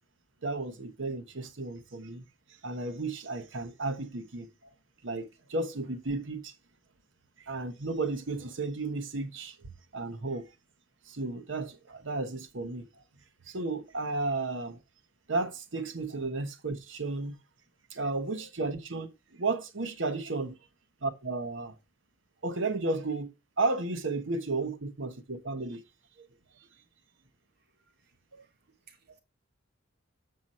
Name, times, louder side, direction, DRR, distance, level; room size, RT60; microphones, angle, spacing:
voice 1, 0.4-2.2 2.6-4.5 5.0-6.5 7.4-10.5 11.1-12.9 13.5-14.8 15.3-17.4 17.9-20.5 21.0-21.7 22.4-23.3 23.6-25.8 26.2-26.3 28.3-28.4, right 3 dB, 70° right, 1.1 m, -33 dB
voice 2, 18.1-18.5 28.9-29.2, left 1 dB, 55° right, 1.9 m, -49 dB
7.6 x 6.0 x 4.1 m
head